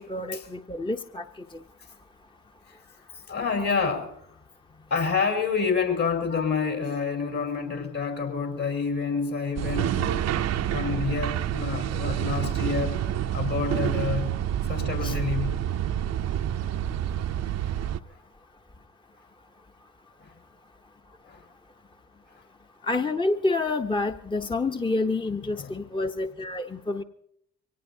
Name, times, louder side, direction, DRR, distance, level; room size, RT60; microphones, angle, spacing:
voice 1, 0.0-1.6 15.0-15.2 22.8-27.0, left 3 dB, 15° left, 5 dB, 0.9 m, -28 dB
voice 2, 3.1-4.1 4.9-10.3 10.7-13.0 13.3-14.3 14.6-15.6 20.2-20.3 21.2-21.4 25.6-25.8, left 5 dB, 55° left, 1 dB, 4.9 m, -28 dB
sound 1, 9.6-18.0, right 10 dB, 50° right, 0.7 m, -28 dB
24.0 x 18.0 x 2.8 m, 0.70 s
hypercardioid pair, 50°, 33 cm